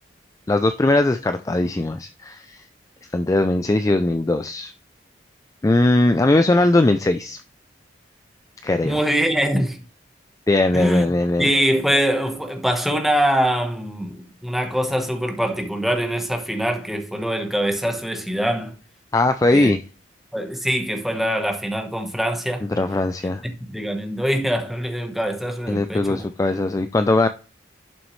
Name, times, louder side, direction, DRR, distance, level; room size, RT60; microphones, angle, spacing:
voice 1, 0.5-2.6 3.1-4.7 5.6-7.4 8.6-9.0 10.5-11.5 19.1-19.8 22.8-23.4 25.7-27.3, left 2 dB, 20° left, 0.3 m, -19 dB
voice 2, 8.8-9.8 10.7-11.1 11.4-18.8 19.5-19.7 20.3-22.7 23.4-26.2, equal, ahead, 1.1 m, -23 dB
11.0 x 6.1 x 3.1 m
head